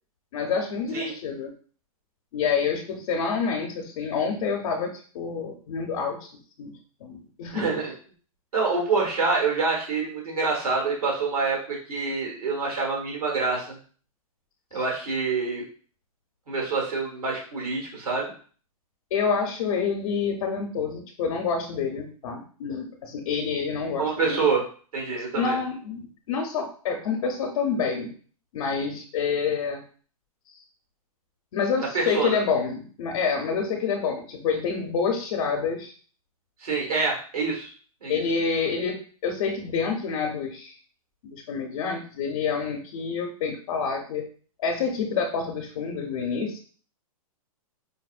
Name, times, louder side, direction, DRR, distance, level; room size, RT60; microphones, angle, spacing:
voice 1, 0.3-1.5 2.3-6.3 6.6-6.7 7.0-7.7 14.7-14.8 19.1-24.4 25.1-28.1 28.5-29.8 31.5-35.9 38.1-40.8 41.2-44.2 44.6-46.6, left 5 dB, 55° left, 2 dB, 0.6 m, -28 dB
voice 2, 7.5-7.9 8.5-13.8 14.7-15.6 16.5-18.3 24.0-24.6 24.9-25.5 31.9-32.3 36.6-37.7 38.0-38.2, right 4 dB, 90° right, -2 dB, 1.4 m, -26 dB
4.9 x 2.0 x 2.4 m, 0.42 s
hypercardioid pair, 140°, 19 cm